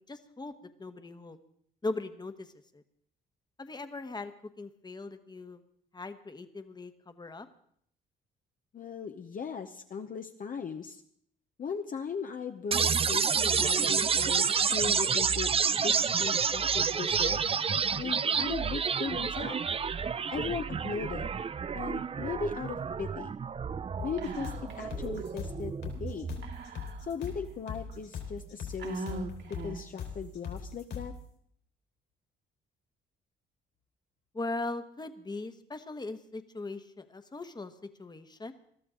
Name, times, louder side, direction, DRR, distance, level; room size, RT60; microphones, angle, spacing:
voice 1, 0.0-1.4 1.8-2.8 3.6-4.3 4.6-5.6 5.9-7.5 34.3-37.7 38.0-38.5, left 2 dB, 20° left, 8 dB, 1.3 m, -39 dB
voice 2, 8.7-11.0 11.6-17.4 18.0-19.6 20.3-21.3 21.7-23.3 24.0-26.3 27.1-31.1, left 6 dB, 45° left, 5 dB, 0.9 m, -38 dB
sound 1, 12.7-26.7, right 6 dB, 30° right, 0.5 m, -29 dB
sound 2, 24.0-31.2, left 6 dB, 70° left, 4.4 m, -40 dB
Whispering, 24.2-24.9 25.2-25.3 26.4-27.3 27.9-28.0 28.8-30.0, right 3 dB, 65° right, 2.6 m, -41 dB
22.0 x 13.0 x 3.8 m, 0.65 s
cardioid pair, 90°, 20 cm